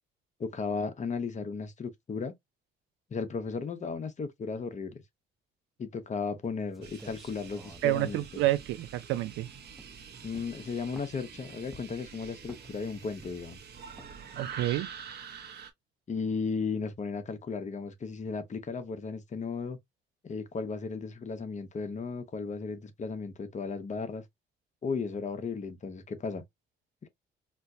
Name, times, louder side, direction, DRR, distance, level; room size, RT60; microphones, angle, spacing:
voice 1, 0.4-2.3 3.1-5.0 5.8-8.4 10.2-13.6 16.1-19.8 20.2-24.2 24.8-26.4 27.0-27.1, left 5 dB, 35° left, 0.9 m, -35 dB
sound 1, 6.4-6.5 6.7-9.3 9.7-10.0 10.3-11.3 11.7-12.1 12.4-12.9 13.2-13.6 14.0-14.2 14.6-14.9, equal, ahead, 0.7 m, -52 dB
sound 2, 6.8-15.7, right 7 dB, 55° right, 0.9 m, -46 dB
voice 2, 7.8-9.5 14.3-14.9, right 15 dB, 90° right, 0.5 m, -29 dB
4.3 x 2.1 x 2.6 m
cardioid pair, 90°, 20 cm